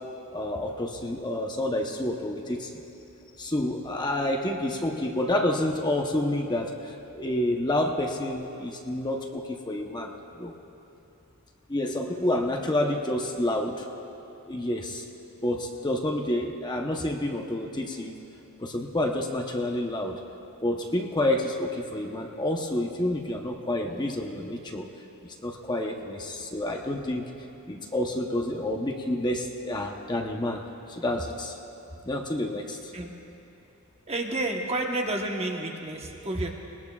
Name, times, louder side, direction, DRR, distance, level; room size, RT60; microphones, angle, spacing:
voice 1, 0.3-2.8 3.4-10.5 11.7-13.9 14.5-15.0 15.4-18.1 18.6-20.2 20.6-24.9 25.2-27.2 27.7-31.6 32.0-32.9, left 1 dB, 20° left, 2 dB, 0.8 m, -29 dB
voice 2, 34.1-36.5, right 2 dB, 30° right, 1 dB, 1.1 m, -30 dB
22.0 x 19.0 x 2.4 m, 2.9 s
head